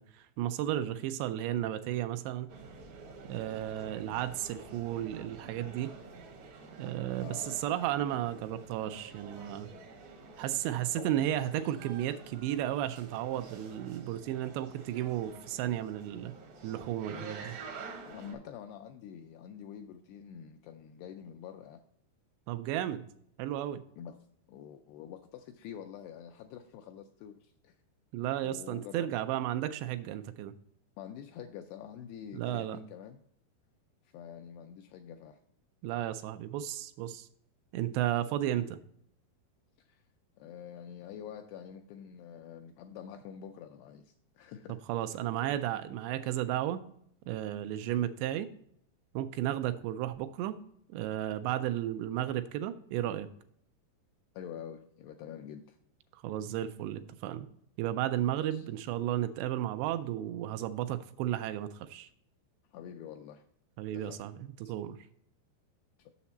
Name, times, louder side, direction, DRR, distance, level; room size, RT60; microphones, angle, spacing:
voice 1, 0.0-2.5 3.3-5.9 6.8-7.3 7.6-9.7 10.4-16.3 16.6-17.6 22.5-23.1 23.4-23.8 28.1-30.5 32.3-32.8 35.8-37.3 37.7-38.8 44.9-46.8 47.3-48.5 49.1-50.6 50.9-53.3 56.1-57.5 57.8-62.1 63.8-65.0, right 12 dB, 85° right, 2.6 m, -33 dB
sound 1, 2.5-18.3, right 4 dB, 70° right, 1.8 m, -49 dB
voice 2, 7.2-7.6 11.0-11.2 18.1-21.8 23.9-24.2 24.5-27.8 28.4-29.1 31.0-33.2 34.0-35.4 39.8-40.0 40.4-44.8 54.4-55.8 58.4-58.7 62.7-63.5 63.9-64.2 64.7-64.8 66.0-66.1, left 9 dB, 85° left, 2.3 m, -46 dB
7.1 x 6.7 x 4.1 m
omnidirectional pair, 5.1 m